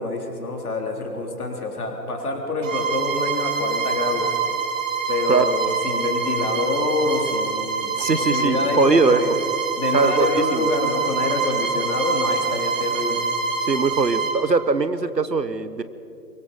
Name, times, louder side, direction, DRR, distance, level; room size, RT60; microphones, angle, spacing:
voice 1, 0.0-4.3 5.1-9.4 9.8-13.3, left 3 dB, 65° left, 2 dB, 3.7 m, -26 dB
Bowed string instrument, 2.6-14.4, right 5 dB, 50° right, 3.1 m, -25 dB
voice 2, 8.0-9.2 9.9-10.7 13.6-15.8, right 4 dB, 90° right, 13 dB, 1.3 m, -21 dB
23.5 x 22.5 x 5.4 m, 2.6 s
figure-of-eight pair, 130°, 48 cm